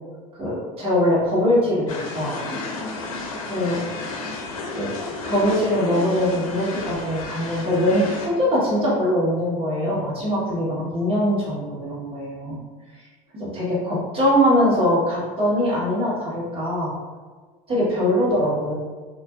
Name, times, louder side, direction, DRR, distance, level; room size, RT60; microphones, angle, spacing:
voice 1, 0.4-2.6 3.5-3.8 4.7-4.9 5.2-12.6 13.5-16.9 17.7-18.7, equal, 30° right, -6 dB, 1.2 m, -22 dB
sound 1, 1.9-8.3, left 3 dB, 85° left, 0.6 m, -32 dB
2.5 x 2.5 x 2.4 m, 1.4 s
hypercardioid pair, 95°, 18 cm